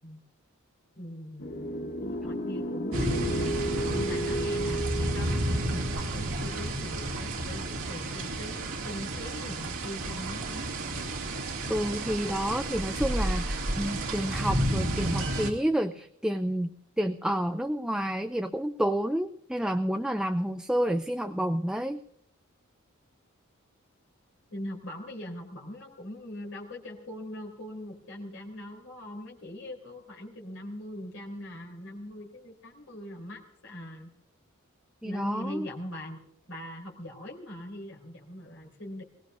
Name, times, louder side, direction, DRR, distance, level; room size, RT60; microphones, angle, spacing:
voice 1, 0.9-1.6 2.0-10.7 24.5-34.1 35.0-36.2 36.5-39.0, left 1 dB, 70° left, -1 dB, 3.7 m, -41 dB
sound 1, 1.4-6.5, right 1 dB, 50° left, 1.1 m, -33 dB
sound 2, 2.9-15.5, right 1 dB, 80° right, 2.3 m, -31 dB
voice 2, 11.7-22.0 35.0-35.7, equal, 5° right, 7 dB, 0.5 m, -29 dB
21.0 x 18.0 x 2.7 m, 0.70 s
head